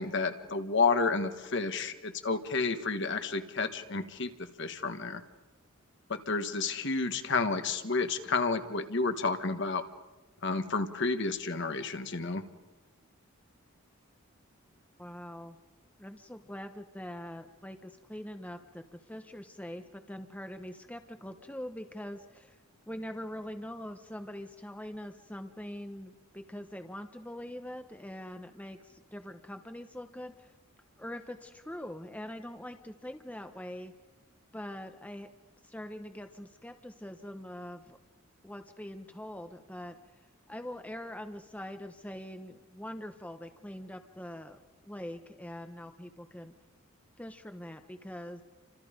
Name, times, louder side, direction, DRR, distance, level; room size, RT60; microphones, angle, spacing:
voice 1, 0.0-4.3 4.6-5.2 6.1-9.8 10.4-12.4, left 4 dB, 55° left, 8 dB, 1.5 m, -30 dB
voice 2, 15.0-15.6 16.0-22.6 22.9-30.5 31.0-33.9 34.5-35.3 35.6-38.0 38.4-40.2 40.5-46.5 47.2-48.4, left 1 dB, 5° left, 6 dB, 0.9 m, -43 dB
30.0 x 25.5 x 5.2 m, 1.2 s
head